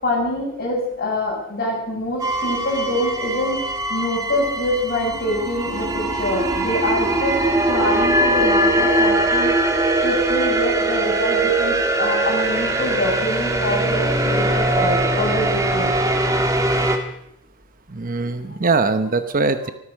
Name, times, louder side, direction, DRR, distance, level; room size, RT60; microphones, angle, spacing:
voice 1, 0.0-9.5 10.0-15.9 18.5-18.6, left 1 dB, 45° left, -1 dB, 6.7 m, -25 dB
sound 1, 2.2-17.0, right 1 dB, 15° right, 1.7 m, -21 dB
voice 2, 17.9-19.7, right 3 dB, 40° right, 10 dB, 0.9 m, -21 dB
15.5 x 13.5 x 6.5 m, 0.78 s
head